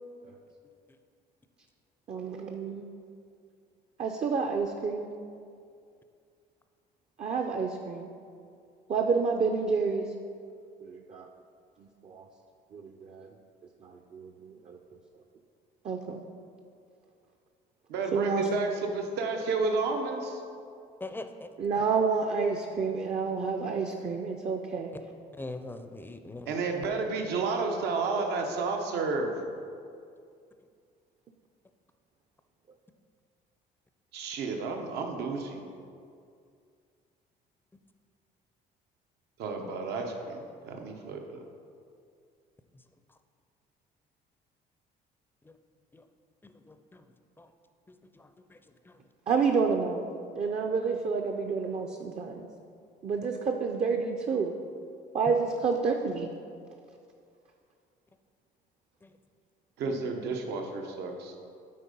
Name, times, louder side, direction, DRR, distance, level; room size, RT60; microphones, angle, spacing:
voice 1, 2.1-2.9 4.0-5.1 7.2-8.1 8.9-10.1 10.8-11.3 12.0-12.2 12.7-13.3 13.8-14.8 15.8-16.2 18.1-18.4 21.6-24.9 49.3-50.0 50.3-52.5 53.0-54.5 55.1-56.3, right 5 dB, 40° right, 3 dB, 0.5 m, -29 dB
voice 2, 17.9-20.4 26.5-29.3 34.1-35.6 39.4-41.4 59.8-61.4, right 4 dB, 80° right, 3 dB, 1.0 m, -31 dB
voice 3, 21.0-21.5 25.4-26.5 45.9-46.0 46.4-47.0 47.4-47.5 48.2-48.6 48.9-49.0 59.0-59.1, left 2 dB, 10° left, 8 dB, 0.5 m, -42 dB
8.6 x 4.3 x 5.3 m, 2.3 s
cardioid pair, 110°, 17 cm